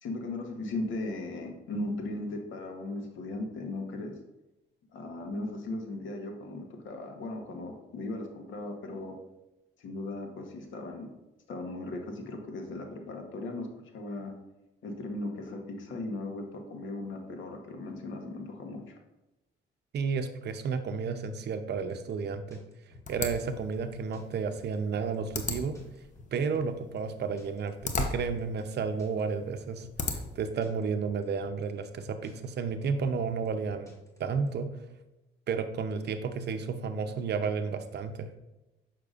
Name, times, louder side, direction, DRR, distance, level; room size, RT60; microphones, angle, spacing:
voice 1, 0.0-4.1 4.9-9.1 9.8-11.1 11.5-13.7 13.9-14.3 14.8-18.8, left 2 dB, 75° left, 3 dB, 1.1 m, -37 dB
voice 2, 19.9-22.6 23.1-25.8 26.3-29.9 30.1-33.9 34.2-34.7 35.5-38.4, right 5 dB, 55° right, 9 dB, 0.6 m, -32 dB
sound 1, 21.7-34.5, left 2 dB, 15° left, 1.5 m, -52 dB
sound 2, 23.1-30.5, left 3 dB, 40° left, 0.8 m, -38 dB
6.5 x 5.8 x 2.5 m, 0.99 s
cardioid pair, 90°, 20 cm